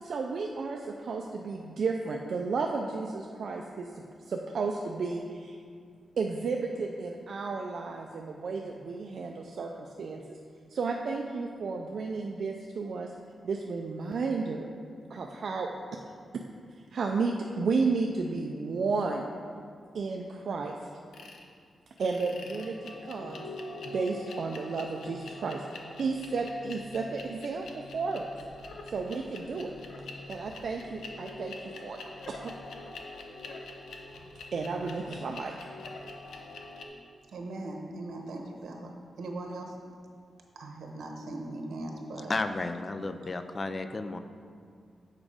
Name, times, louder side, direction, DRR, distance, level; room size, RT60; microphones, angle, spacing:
voice 1, 0.0-5.6 6.2-10.4 10.7-13.1 13.4-14.7 15.1-16.0 16.8-19.3 19.9-20.8 22.0-23.4 23.8-28.3 28.9-29.7 30.3-32.0 32.3-32.5 34.5-35.5, right 4 dB, 55° right, 1 dB, 0.4 m, -33 dB
sound 1, 21.1-21.4 22.0-36.9, left 2 dB, 85° left, 0.7 m, -44 dB
voice 2, 37.3-39.8 40.5-42.3, right 2 dB, 80° right, 2 dB, 1.0 m, -39 dB
voice 3, 42.3-44.2, left 3 dB, 25° left, 9 dB, 0.3 m, -33 dB
7.4 x 4.8 x 4.9 m, 2.2 s
wide cardioid pair, 180°, 0 cm